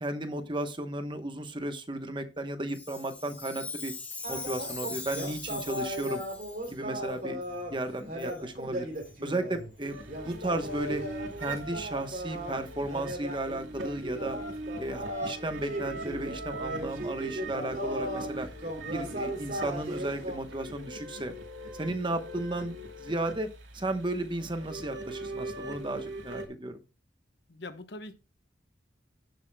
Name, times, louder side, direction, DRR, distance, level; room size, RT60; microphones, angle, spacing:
voice 1, 0.0-3.9 4.3-6.2 6.7-7.4 7.7-8.9 9.2-11.0 11.4-14.4 14.8-18.5 18.9-21.3 21.7-23.5 23.7-26.8, right 1 dB, 25° right, 8 dB, 1.0 m, -34 dB
Chime, 2.7-6.8 7.4-7.5 8.2-8.4 8.9-9.1 9.8-9.9 10.5-10.6 11.4-11.5, left 3 dB, 10° left, 1.3 m, -41 dB
sound 1, 4.2-20.4, equal, 45° right, 3.0 m, -37 dB
sound 2, 9.9-26.5, right 1 dB, 80° right, 2.3 m, -41 dB
voice 2, 27.5-28.1, left 2 dB, 60° left, 10 dB, 1.0 m, -42 dB
16.5 x 7.3 x 2.2 m, 0.29 s
head